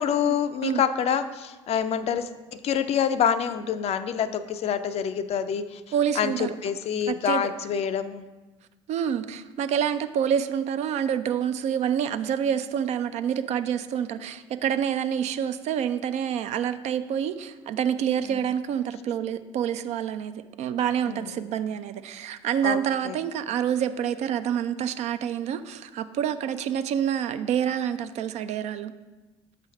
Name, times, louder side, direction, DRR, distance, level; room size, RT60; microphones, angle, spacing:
voice 1, 0.0-2.3 2.6-5.8 6.2-8.2 18.3-18.4 21.1-21.3 22.6-22.8 23.0-23.2, left 8 dB, 45° left, 11 dB, 0.4 m, -26 dB
voice 2, 5.9-6.5 7.1-7.5 8.9-28.9, right 9 dB, 50° right, 11 dB, 0.4 m, -27 dB
6.1 x 3.4 x 5.6 m, 1.2 s
figure-of-eight pair, 55°, 15 cm